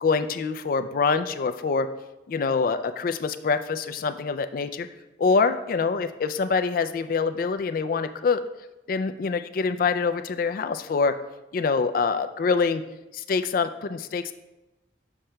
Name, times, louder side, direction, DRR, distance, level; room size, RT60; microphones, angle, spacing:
voice 1, 0.0-1.9 2.3-4.9 5.2-8.4 8.9-11.1 11.5-12.8 13.1-14.3, left 4 dB, 50° left, 10 dB, 0.3 m, -25 dB
7.2 x 6.4 x 2.2 m, 0.99 s
head